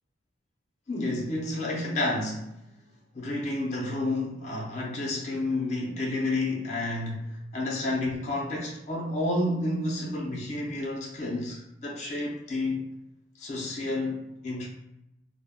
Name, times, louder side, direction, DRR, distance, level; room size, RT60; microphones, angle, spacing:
voice 1, 0.9-2.6 3.1-12.9 13.4-14.7, left 2 dB, 40° left, -2 dB, 0.4 m, -30 dB
2.1 x 2.0 x 3.4 m, 0.86 s
head